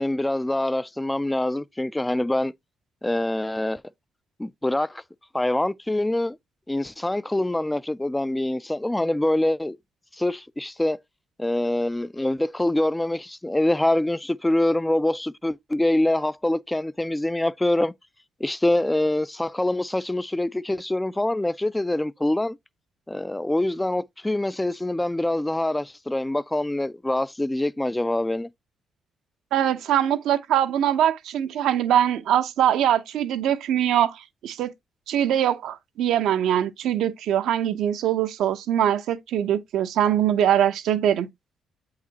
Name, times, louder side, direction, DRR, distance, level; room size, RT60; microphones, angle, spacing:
voice 1, 0.0-2.5 3.0-3.8 4.4-5.0 5.3-6.4 6.7-9.8 10.2-11.0 11.4-17.9 18.4-22.6 23.1-28.5, left 1 dB, 10° left, 0.4 m, -25 dB
voice 2, 29.5-34.7 35.1-41.3, right 10 dB, 80° right, 0.7 m, -22 dB
8.1 x 4.8 x 2.8 m
cardioid pair, 90°, 0 cm